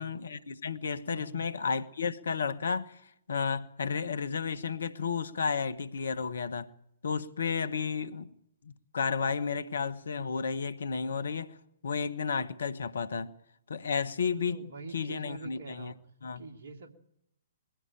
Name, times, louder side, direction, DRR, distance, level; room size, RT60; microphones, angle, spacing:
voice 1, 0.0-6.7 7.0-8.3 8.6-11.6 11.8-13.3 13.7-15.9 16.2-16.4, left 5 dB, 65° left, 1.3 m, -32 dB
voice 2, 1.0-1.5 14.3-16.0 16.4-16.9, right 3 dB, 60° right, 2.6 m, -45 dB
22.0 x 16.5 x 9.0 m
figure-of-eight pair, 120°, 0 cm